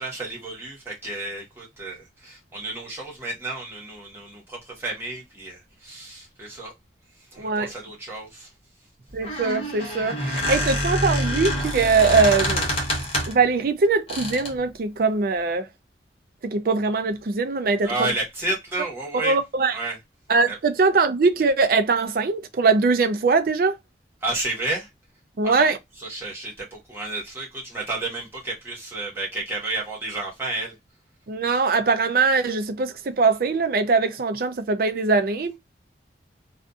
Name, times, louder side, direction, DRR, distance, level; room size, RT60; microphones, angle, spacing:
voice 1, 0.0-6.7 7.3-8.5 17.8-19.4 19.7-20.0 20.5-20.6 24.2-24.9 25.4-25.7 26.0-30.7, right 2 dB, 15° right, 1.1 m, -31 dB
voice 2, 7.4-7.7 9.1-12.7 13.3-15.7 16.4-18.1 19.2-19.7 20.3-23.8 25.4-25.8 31.3-35.6, right 4 dB, 50° right, 0.4 m, -21 dB
Squeak, 9.1-13.5 14.1-14.6, equal, 30° left, 0.8 m, -26 dB
2.5 x 2.5 x 2.3 m
head